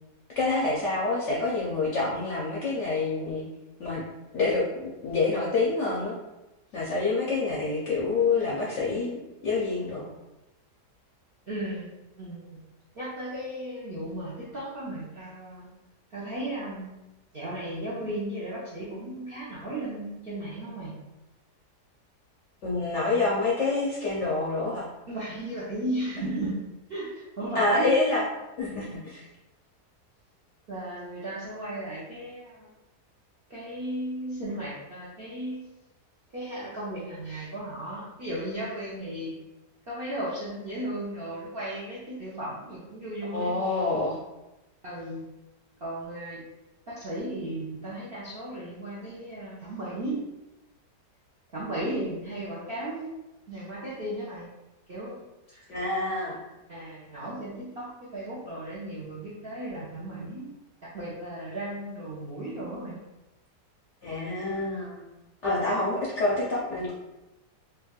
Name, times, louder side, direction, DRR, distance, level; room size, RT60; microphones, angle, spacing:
voice 1, 0.4-3.4 3.8-4.0 4.3-6.1 6.7-9.2 9.4-10.1 22.6-24.9 27.5-28.3 28.6-29.2 43.3-44.2 55.7-56.4 64.0-65.0 65.4-66.9, left 3 dB, 70° left, -5 dB, 0.7 m, -27 dB
voice 2, 11.5-11.9 12.2-12.6 13.0-15.7 16.1-16.9 17.3-20.9 25.1-26.6 26.9-27.9 30.7-32.7 33.5-35.7 36.3-39.3 39.9-43.6 44.8-45.2 45.8-46.4 46.9-50.2 51.5-53.2 53.5-54.5 54.9-55.2 55.5-55.6 56.7-60.5 60.9-63.0, right 1 dB, 70° right, -6 dB, 0.5 m, -35 dB
4.1 x 2.2 x 2.3 m, 0.99 s
omnidirectional pair, 1.8 m